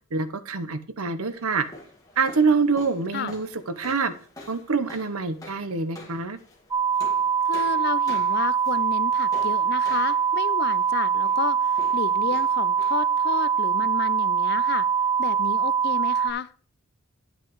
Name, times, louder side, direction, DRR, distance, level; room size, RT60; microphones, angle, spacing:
voice 1, 0.1-1.7 2.2-3.5 3.8-4.1 4.5-6.4, right 4 dB, 80° right, 12 dB, 0.9 m, -25 dB
sound 1, 1.3-15.5, left 1 dB, 15° left, 1.9 m, -48 dB
sound 2, 6.7-16.3, right 7 dB, 15° right, 0.6 m, -23 dB
voice 2, 7.5-14.9 15.2-16.5, left 6 dB, 45° left, 16 dB, 0.5 m, -32 dB
10.0 x 8.1 x 3.1 m, 0.40 s
head